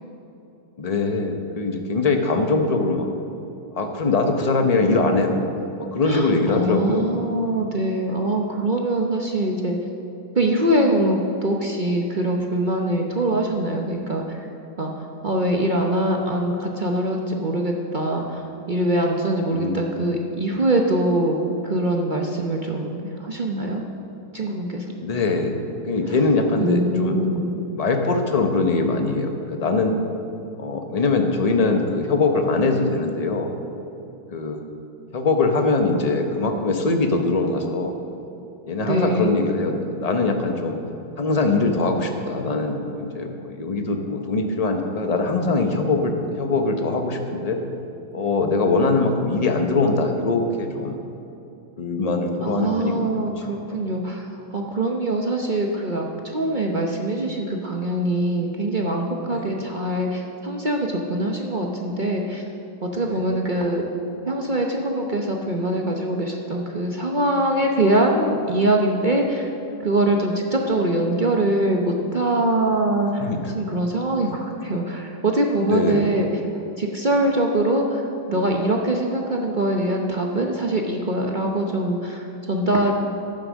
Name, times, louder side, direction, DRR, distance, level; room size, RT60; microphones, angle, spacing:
voice 1, 0.8-3.1 3.7-5.5 5.8-7.1 19.5-19.9 25.0-25.5 25.8-27.2 27.7-30.0 30.6-33.5 34.3-34.6 35.1-38.0 38.7-40.8 41.2-47.6 48.1-51.0 51.8-53.1 53.4-53.9 59.3-59.6 63.0-63.4 73.2-73.5 75.6-76.1, left 3 dB, 45° left, 4 dB, 0.5 m, -22 dB
voice 2, 6.1-9.8 10.4-14.5 14.8-21.4 21.6-23.8 24.3-24.8 26.6-27.6 38.8-39.3 52.4-62.4 62.8-63.9 64.2-69.5 69.8-76.3 76.8-82.9, right 1 dB, 45° right, 1 dB, 0.6 m, -23 dB
11.5 x 8.9 x 6.3 m, 2.9 s
omnidirectional pair, 2.0 m